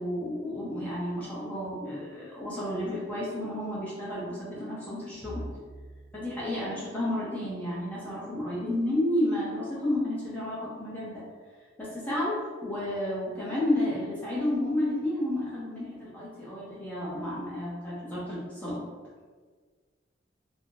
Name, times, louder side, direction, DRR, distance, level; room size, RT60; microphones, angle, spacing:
voice 1, 0.0-5.4 6.1-11.2 11.8-18.8, left 1 dB, 10° left, -8 dB, 0.7 m, -31 dB
Bowed string instrument, 5.2-9.4, right 1 dB, 35° right, 0.8 m, -47 dB
2.5 x 2.2 x 3.7 m, 1.5 s
head